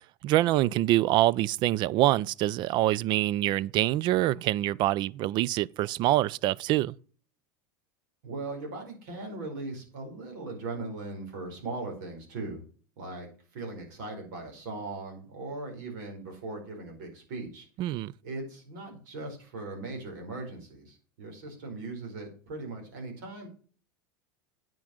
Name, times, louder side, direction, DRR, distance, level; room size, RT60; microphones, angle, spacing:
voice 1, 0.2-7.0 17.8-18.1, right 15 dB, 50° right, 0.4 m, -25 dB
voice 2, 8.2-12.6 13.0-13.3 13.5-17.7 18.2-23.5, right 3 dB, 70° right, 4.9 m, -39 dB
8.9 x 5.9 x 6.5 m
supercardioid pair, 105°, 10 cm